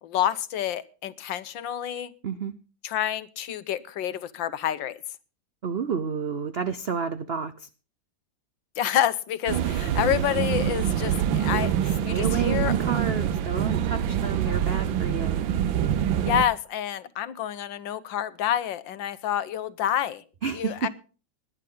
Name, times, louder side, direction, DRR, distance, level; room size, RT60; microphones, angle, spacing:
voice 1, 0.0-2.1 2.8-5.0 8.8-12.8 16.2-20.2 20.5-20.9, left 10 dB, 75° left, 14 dB, 1.6 m, -28 dB
voice 2, 5.6-7.7 12.0-15.4 20.4-20.9, right 6 dB, 65° right, 11 dB, 0.6 m, -30 dB
sound 1, 9.5-16.4, right 9 dB, 80° right, 1.7 m, -25 dB
20.0 x 10.5 x 3.8 m, 0.35 s
omnidirectional pair, 2.1 m